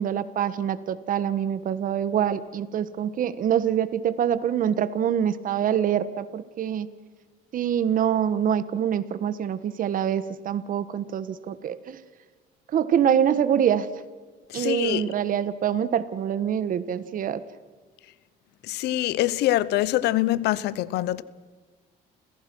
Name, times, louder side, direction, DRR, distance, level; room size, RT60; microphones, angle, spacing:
voice 1, 0.0-6.9 7.5-12.0 12.7-13.9 14.5-17.4, right 9 dB, 55° right, 1.3 m, -25 dB
voice 2, 14.5-15.1 18.6-21.2, left 15 dB, 85° left, 0.8 m, -24 dB
29.5 x 16.0 x 6.1 m
cardioid pair, 110°, 17 cm